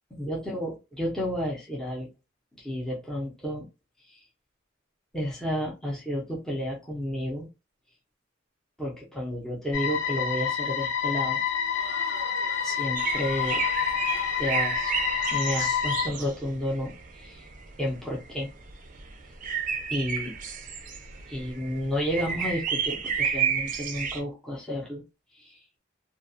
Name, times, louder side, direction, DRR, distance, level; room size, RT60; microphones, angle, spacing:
voice 1, 0.1-2.1 2.6-3.6 4.1-4.2 5.1-7.5 8.8-11.4 11.9-12.0 12.6-13.6 14.4-14.9 15.3-17.4 17.8-18.5 19.9-20.3 21.3-25.0 25.3-25.6, equal, 5° left, -4 dB, 0.6 m, -31 dB
sound 1, 9.7-16.1, left 7 dB, 65° left, 0.7 m, -28 dB
Crowd, 11.4-16.2, left 2 dB, 40° left, 0.8 m, -45 dB
sound 2, 13.0-24.2, right 6 dB, 40° right, 0.4 m, -31 dB
2.4 x 2.2 x 2.6 m, 0.27 s
head